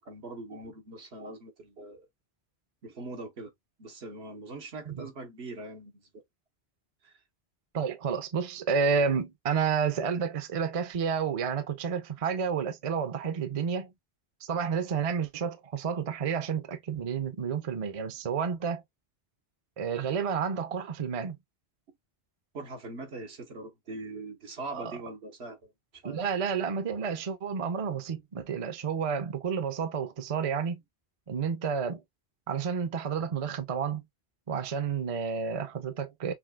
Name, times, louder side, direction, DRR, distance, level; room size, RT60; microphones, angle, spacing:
voice 1, 0.0-2.1 2.8-3.5 3.8-6.2 7.0-7.2 22.5-25.7 26.0-26.3, right 2 dB, 80° right, 1.5 m, -42 dB
voice 2, 7.7-13.9 14.4-18.8 19.8-21.4 24.7-25.0 26.0-30.8 31.3-32.0 32.5-34.0 34.5-36.3, right 6 dB, 40° right, 0.6 m, -30 dB
5.9 x 2.4 x 2.2 m
omnidirectional pair, 1.1 m